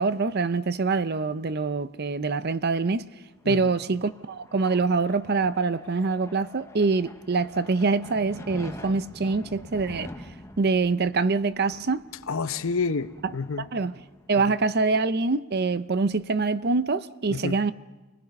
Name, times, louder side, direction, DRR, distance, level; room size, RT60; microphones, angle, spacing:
voice 1, 0.0-3.1 3.5-10.1 10.6-12.0 13.7-13.9 14.3-17.7, right 4 dB, 45° right, 0.6 m, -25 dB
sound 1, 3.4-14.7, left 1 dB, 15° left, 0.9 m, -46 dB
voice 2, 12.3-13.7 14.5-14.6 17.3-17.6, left 4 dB, 60° left, 0.8 m, -29 dB
29.0 x 19.5 x 5.4 m
head